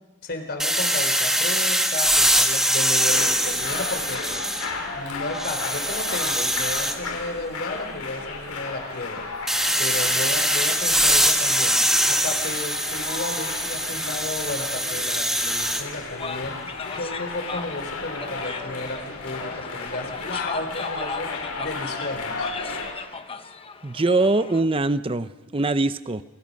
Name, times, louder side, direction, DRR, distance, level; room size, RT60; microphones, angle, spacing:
voice 1, 0.2-4.4 4.9-9.3 9.8-11.8 12.1-16.6 16.9-21.3 21.6-22.5, left 2 dB, 45° left, 6 dB, 3.7 m, -33 dB
sound 1, 0.6-4.9 5.3-7.0 9.5-15.8, right 1 dB, ahead, 1.5 m, -23 dB
sound 2, 3.0-22.9, left 3 dB, 85° left, 6.4 m, -34 dB
sound 3, 16.2-24.6, left 5 dB, 25° left, 0.9 m, -37 dB
voice 2, 23.8-26.2, right 2 dB, 25° right, 13 dB, 0.6 m, -23 dB
29.0 x 26.0 x 5.4 m, 1.3 s
head